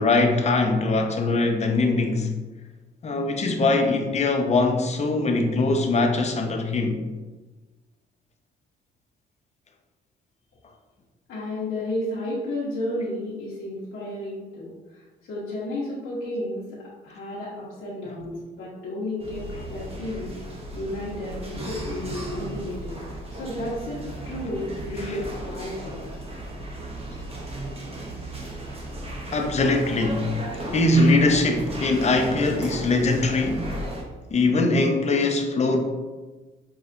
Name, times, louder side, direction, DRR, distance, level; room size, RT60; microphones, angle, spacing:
voice 1, 0.0-2.3 3.0-7.0 18.1-18.2 29.3-30.3 30.7-33.7 34.3-35.8, left 2 dB, 35° left, 0.6 m, -22 dB
voice 2, 11.3-16.8 17.0-26.0, left 1 dB, 70° left, 1.0 m, -32 dB
sound 1, 19.2-34.0, right 1 dB, 30° right, 0.8 m, -35 dB
5.5 x 2.3 x 2.5 m
cardioid pair, 90°, 20 cm